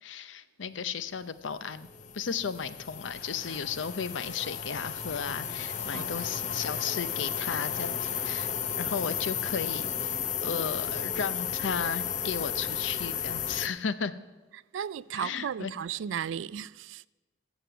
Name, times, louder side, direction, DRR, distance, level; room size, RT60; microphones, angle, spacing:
voice 1, 0.0-1.9 2.1-14.1 15.1-15.7, left 6 dB, 85° left, 0.6 m, -35 dB
sound 1, 1.5-13.7, left 8 dB, 40° left, 0.5 m, -34 dB
sound 2, 3.1-9.7, left 1 dB, 60° left, 3.0 m, -49 dB
voice 2, 14.7-17.0, right 8 dB, 85° right, 0.3 m, -35 dB
13.5 x 7.3 x 6.9 m
head